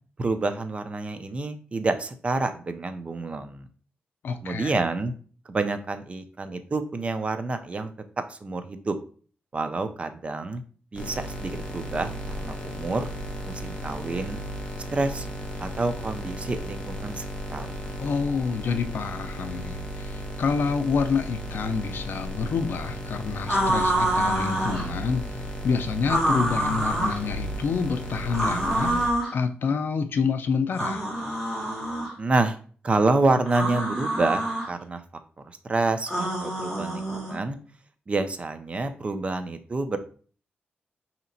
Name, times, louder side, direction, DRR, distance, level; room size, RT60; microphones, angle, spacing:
voice 1, 0.2-3.7 4.4-5.1 5.5-7.9 8.3-9.0 9.5-10.6 10.9-13.1 13.5-14.4 14.9-15.3 15.6-17.2 17.5-17.7 32.2-32.6 32.8-35.0 35.4-37.6 38.1-40.0, right 3 dB, 30° right, 9 dB, 0.4 m, -28 dB
voice 2, 4.2-4.7 18.0-25.3 25.6-28.9 29.3-31.1, left 5 dB, 65° left, 8 dB, 0.4 m, -27 dB
sound 1, 10.9-29.1, equal, 20° left, 1.0 m, -35 dB
sound 2, 23.5-24.9 26.0-27.2 28.3-29.3 30.7-32.1 33.5-34.7 36.1-37.4, right 1 dB, ahead, 1.8 m, -26 dB
5.0 x 2.8 x 2.6 m, 0.42 s
wide cardioid pair, 115°, 4 cm